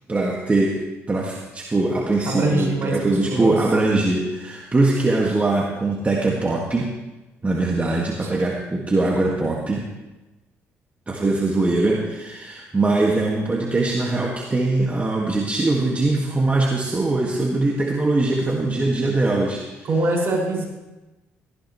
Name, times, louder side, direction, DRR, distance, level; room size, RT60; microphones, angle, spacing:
voice 1, 0.1-0.8 1.1-6.9 7.4-9.8 11.1-19.9, right 2 dB, 25° right, -1 dB, 1.8 m, -22 dB
voice 2, 2.2-3.6 8.2-8.3 19.8-20.6, right 2 dB, 50° right, -2 dB, 5.6 m, -23 dB
17.0 x 14.0 x 3.1 m, 1.1 s
supercardioid pair, 70°, 6 cm